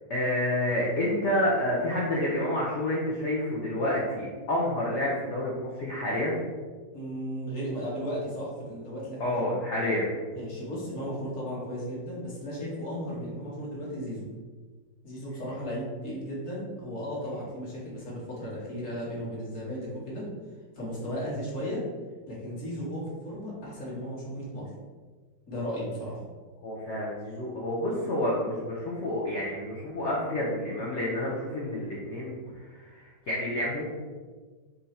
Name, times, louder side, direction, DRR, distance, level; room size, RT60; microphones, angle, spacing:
voice 1, 0.1-6.4 9.2-10.1 26.6-32.4 32.6-33.8, left 1 dB, 65° left, -5 dB, 0.7 m, -29 dB
voice 2, 6.9-9.5 10.3-14.3 15.0-20.2 20.7-21.8 22.3-24.7 25.5-26.2, equal, 45° left, -6 dB, 1.6 m, -35 dB
3.8 x 2.7 x 4.2 m, 1.4 s
omnidirectional pair, 2.0 m